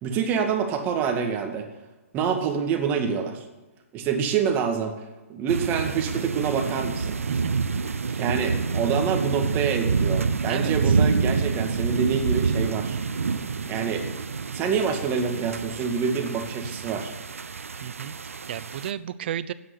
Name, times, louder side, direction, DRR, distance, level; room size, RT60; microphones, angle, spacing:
voice 1, 0.0-1.7 2.1-3.4 3.9-5.0 5.3-7.2 8.2-13.0 13.7-14.1 14.5-17.1, right 6 dB, 25° right, 4 dB, 2.2 m, -26 dB
sound 1, 5.5-18.9, right 5 dB, 80° right, 0.8 m, -27 dB
voice 2, 7.3-7.7 8.1-8.2 10.5-11.0 17.8-19.5, right 10 dB, 50° right, 16 dB, 0.8 m, -34 dB
12.5 x 9.6 x 9.7 m, 1.2 s
hypercardioid pair, 130°, 7 cm